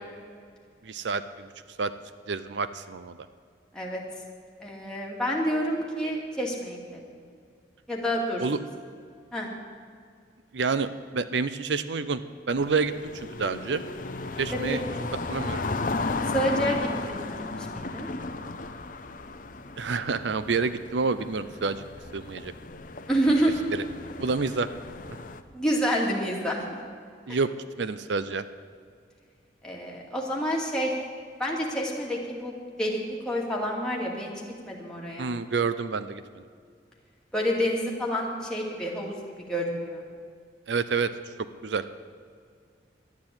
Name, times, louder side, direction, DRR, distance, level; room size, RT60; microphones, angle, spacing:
voice 1, 0.8-1.5 1.8-1.9 2.3-3.3 8.4-8.6 10.5-12.2 12.5-13.8 14.4-14.8 15.3-15.7 19.8-21.8 22.1-22.5 23.7-23.8 24.2-24.7 27.3-27.5 27.8-28.4 35.2-36.4 40.7-41.1 41.4-41.8, right 4 dB, 80° right, 13 dB, 0.6 m, -28 dB
voice 2, 4.6-7.0 7.9-8.4 9.3-9.5 14.5-14.8 16.3-17.2 17.6-18.1 23.1-23.6 25.5-26.8 29.6-30.9 31.4-32.5 32.8-33.0 33.2-34.3 34.6-35.3 37.3-39.2 39.5-40.0, equal, 5° left, -3 dB, 2.3 m, -28 dB
sound 1, 12.5-25.4, left 3 dB, 50° left, 0.7 m, -35 dB
12.0 x 9.6 x 8.8 m, 2.2 s
head